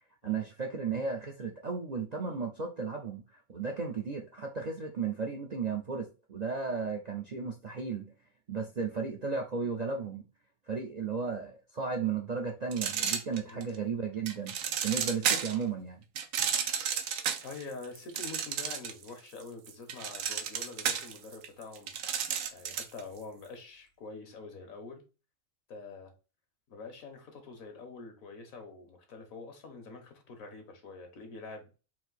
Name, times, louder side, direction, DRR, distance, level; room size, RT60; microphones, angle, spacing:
voice 1, 0.2-8.1 8.5-10.3 10.7-14.5 14.8-16.0, right 5 dB, 55° right, 0.4 m, -34 dB
sound 1, 12.7-13.8 14.3-15.6 16.2-19.1 19.4-23.0, right 8 dB, 80° right, 1.0 m, -32 dB
voice 2, 17.4-21.9 22.5-25.0 25.7-26.1 26.7-31.7, left 4 dB, 85° left, 1.6 m, -46 dB
4.3 x 2.6 x 3.9 m
omnidirectional pair, 1.4 m